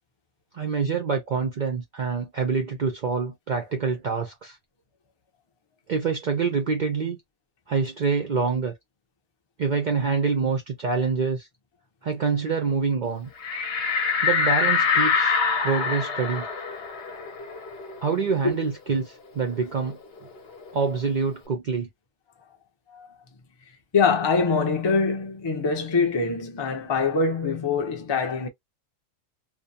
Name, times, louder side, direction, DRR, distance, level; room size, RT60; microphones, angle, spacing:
voice 1, 0.5-4.6 5.9-7.2 7.7-8.7 9.6-11.5 12.0-13.3 14.2-16.5 18.0-20.0 20.7-21.9, right 5 dB, 65° right, 0.4 m, -26 dB
sound 1, 13.4-18.6 19.0-19.1 19.4-21.0, left 5 dB, 55° left, 0.8 m, -25 dB
voice 2, 23.9-28.5, left 4 dB, 40° left, 0.3 m, -24 dB
2.6 x 2.1 x 2.7 m
omnidirectional pair, 1.4 m